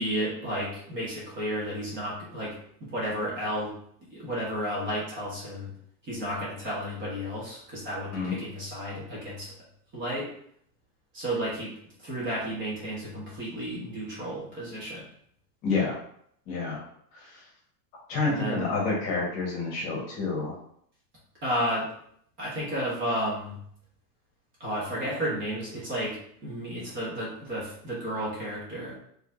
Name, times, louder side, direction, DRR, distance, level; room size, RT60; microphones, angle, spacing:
voice 1, 0.0-3.7 4.1-5.7 6.0-9.5 9.9-10.3 11.1-11.7 12.0-15.0 18.3-18.8 21.4-21.8 22.4-23.5 24.6-29.0, equal, 25° right, -6 dB, 1.5 m, -32 dB
voice 2, 15.6-16.0 16.5-16.8 17.1-17.3 18.1-20.5, left 3 dB, 35° left, -3 dB, 1.5 m, -28 dB
5.0 x 3.3 x 2.7 m, 0.67 s
supercardioid pair, 155°, 49 cm